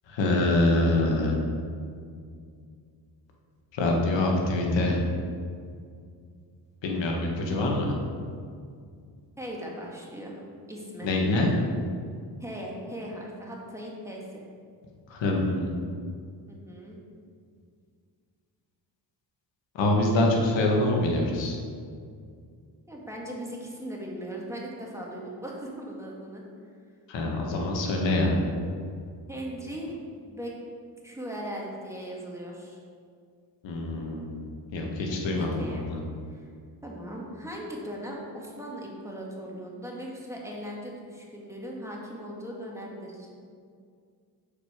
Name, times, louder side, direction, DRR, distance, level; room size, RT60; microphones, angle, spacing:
voice 1, 0.1-1.4 3.7-5.0 6.8-7.9 11.0-11.5 15.1-15.7 19.7-21.6 27.1-28.3 33.6-34.4 34.7-36.0, left 2 dB, 70° left, 0 dB, 1.6 m, -25 dB
voice 2, 9.4-10.4 10.7-11.1 12.4-14.4 16.5-17.0 22.9-26.4 29.3-30.0 30.2-30.5 31.0-32.8 34.7-35.9 36.3-36.5 36.8-43.3, equal, 5° right, -3 dB, 1.8 m, -38 dB
6.7 x 5.1 x 5.0 m, 2.2 s
supercardioid pair, 65°, 45 cm